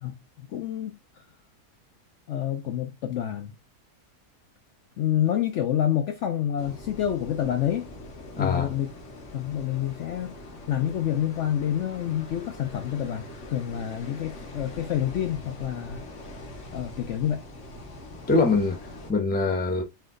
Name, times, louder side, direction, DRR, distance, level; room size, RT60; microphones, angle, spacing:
voice 1, 0.0-1.2 2.3-3.5 5.0-7.9 8.4-8.9 9.3-10.4 10.7-16.0 16.7-17.4, left 10 dB, 70° left, 0.7 m, -28 dB
sound 1, 6.6-19.1, left 1 dB, 50° left, 1.3 m, -43 dB
voice 2, 8.4-8.7 18.3-19.8, left 3 dB, 15° left, 0.4 m, -24 dB
4.3 x 2.7 x 3.7 m
omnidirectional pair, 1.7 m